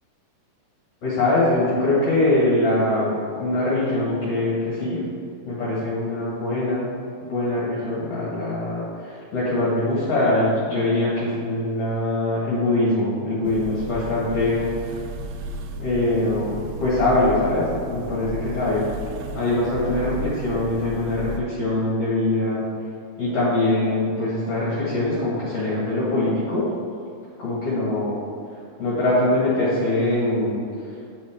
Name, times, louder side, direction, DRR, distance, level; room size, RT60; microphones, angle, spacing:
voice 1, 1.0-5.0 5.4-6.9 7.3-14.7 15.8-18.8 19.4-22.6 23.2-26.7 27.4-28.2 28.8-30.6, left 2 dB, 50° left, -8 dB, 2.2 m, -23 dB
sound 1, 13.4-21.4, right 1 dB, 80° right, 2.4 m, -34 dB
9.7 x 6.2 x 3.6 m, 2.4 s
omnidirectional pair, 4.5 m